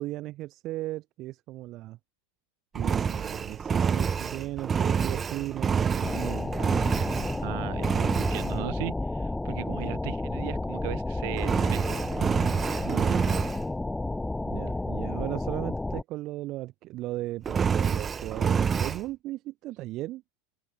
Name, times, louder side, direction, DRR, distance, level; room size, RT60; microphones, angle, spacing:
voice 1, 0.0-2.0 2.7-6.7 7.0-7.3 12.8-13.2 14.5-20.2, right 17 dB, 50° right, 0.9 m, -36 dB
Engine, 2.8-7.5 7.8-8.5 11.4-13.6 17.4-19.0, right 6 dB, 25° right, 0.3 m, -27 dB
sound 1, 6.0-16.0, left 2 dB, 10° left, 1.7 m, -31 dB
voice 2, 7.4-12.1, right 27 dB, 65° right, 4.3 m, -37 dB
hypercardioid pair, 100°, 0 cm